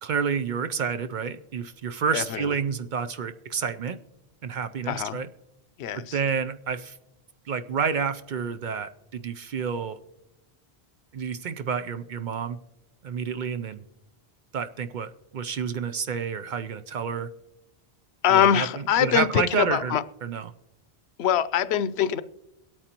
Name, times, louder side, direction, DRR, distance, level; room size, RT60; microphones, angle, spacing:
voice 1, 0.0-4.0 4.4-5.3 6.1-7.0 7.5-10.0 11.1-12.6 13.0-13.8 14.5-17.3 18.3-18.7 19.0-20.0 20.2-20.5, right 6 dB, 60° right, 0.6 m, -29 dB
voice 2, 2.1-2.5 4.9-5.2 5.8-6.2 18.2-20.0 21.2-22.2, left 9 dB, 85° left, 0.8 m, -23 dB
22.5 x 8.9 x 2.9 m
omnidirectional pair, 1.1 m